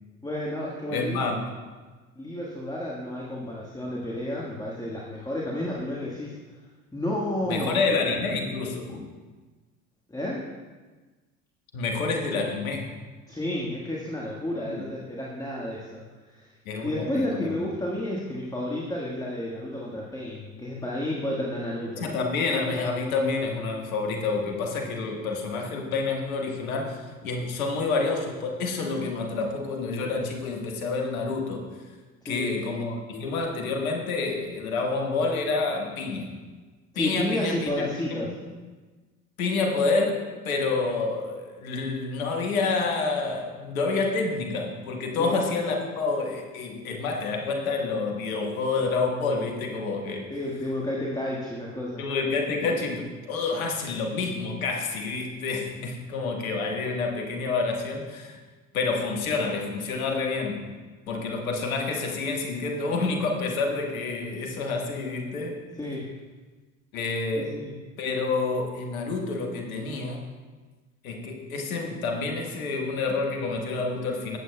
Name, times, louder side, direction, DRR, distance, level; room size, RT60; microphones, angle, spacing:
voice 1, 0.2-1.2 2.2-6.4 6.9-7.8 8.2-8.3 10.1-10.5 13.3-16.0 16.3-16.5 16.8-22.1 32.2-32.5 36.9-38.3 45.2-45.4 50.3-52.0 65.8-66.1 67.4-67.7, left 1 dB, 10° left, -3 dB, 1.5 m, -31 dB
voice 2, 0.9-1.5 7.5-9.0 11.7-12.9 14.7-14.8 16.6-17.6 22.0-31.6 32.2-36.3 36.9-38.3 39.4-50.3 52.0-58.4 58.7-60.6 61.1-65.6 66.9-67.6 68.0-70.3 71.0-74.4, left 3 dB, 80° left, 2 dB, 1.5 m, -28 dB
16.5 x 8.0 x 2.2 m, 1.3 s
hypercardioid pair, 70°, 42 cm